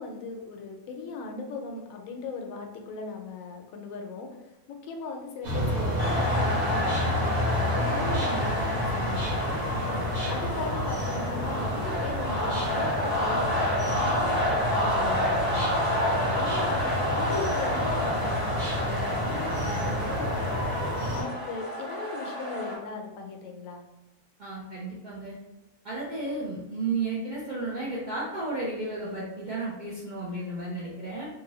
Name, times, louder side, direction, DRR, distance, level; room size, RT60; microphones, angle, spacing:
voice 1, 0.0-4.3 4.7-8.7 8.9-9.7 10.3-20.6 21.1-23.8, left 3 dB, 75° left, 3 dB, 1.0 m, -38 dB
sound 1, 5.4-21.2, left 1 dB, 85° right, 1.4 m, -30 dB
sound 2, 6.0-22.8, left 1 dB, 20° left, 0.7 m, -29 dB
voice 2, 24.4-25.3 25.8-31.3, right 3 dB, 50° right, -8 dB, 0.6 m, -33 dB
2.6 x 2.6 x 3.0 m, 0.96 s
omnidirectional pair, 1.5 m